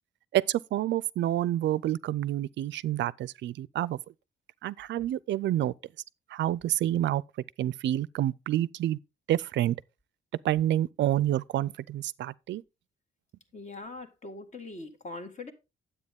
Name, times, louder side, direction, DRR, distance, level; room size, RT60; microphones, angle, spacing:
voice 1, 0.3-4.0 4.6-5.7 6.3-7.2 7.6-9.0 9.3-9.8 10.4-12.6, right 13 dB, 65° right, 0.5 m, -28 dB
voice 2, 13.5-15.5, left 2 dB, 35° left, 1.9 m, -42 dB
9.7 x 8.1 x 3.6 m
cardioid pair, 90°, 20 cm